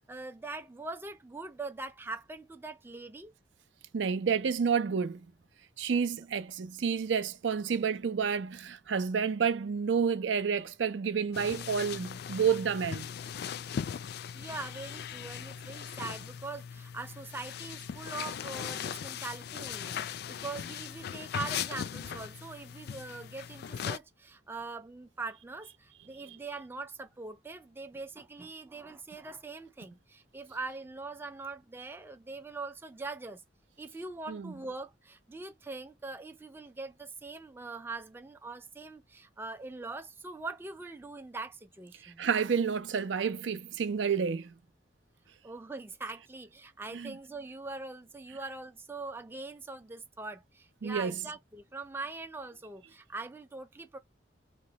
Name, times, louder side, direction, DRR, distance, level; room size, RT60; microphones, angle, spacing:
voice 1, 0.0-3.3 14.3-33.4 33.8-42.2 45.4-54.0, right 3 dB, 10° right, 0.4 m, -42 dB
voice 2, 3.9-5.2 5.8-13.1 34.3-34.5 42.0-44.5 46.9-47.1 50.8-51.2, right 6 dB, 75° right, 0.5 m, -30 dB
sound 1, 11.3-24.0, left 8 dB, 60° left, 0.3 m, -39 dB
3.0 x 2.1 x 3.9 m
head